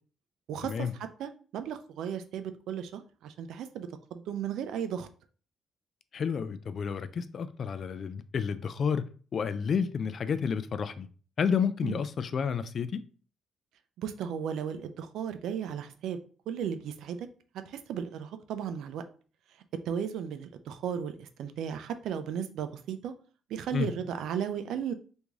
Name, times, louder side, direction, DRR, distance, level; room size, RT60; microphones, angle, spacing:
voice 1, 0.5-0.9 1.2-5.1 11.8-12.0 14.0-16.2 16.5-17.3 17.7-19.0 19.9-23.1 23.5-24.9, right 8 dB, 80° right, 0.4 m, -35 dB
voice 2, 6.1-9.1 9.3-11.1 11.4-13.0 23.7-23.9, left 6 dB, 50° left, 0.3 m, -30 dB
3.0 x 2.6 x 3.5 m
cardioid pair, 90°, 0 cm